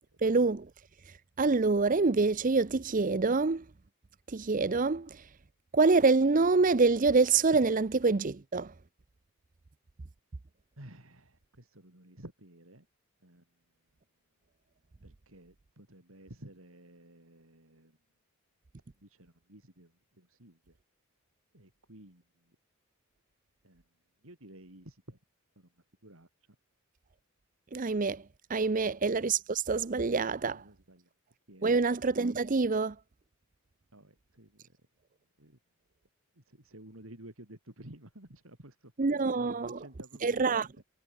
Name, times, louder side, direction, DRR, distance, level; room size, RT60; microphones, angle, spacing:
voice 1, 0.2-0.7 1.4-3.6 4.3-5.2 5.7-8.7 27.7-28.2 28.5-30.6 31.6-33.0 39.0-39.8 40.2-40.7, right 4 dB, 40° right, 0.6 m, -26 dB
voice 2, 10.8-12.9 13.2-13.4 15.0-18.0 19.0-20.8 21.5-22.6 23.6-23.8 24.2-25.2 25.6-25.7 26.0-26.3 30.3-31.1 31.5-31.8 33.9-34.7 35.4-35.6 36.4-40.8, right 1 dB, 70° right, 4.3 m, -53 dB
head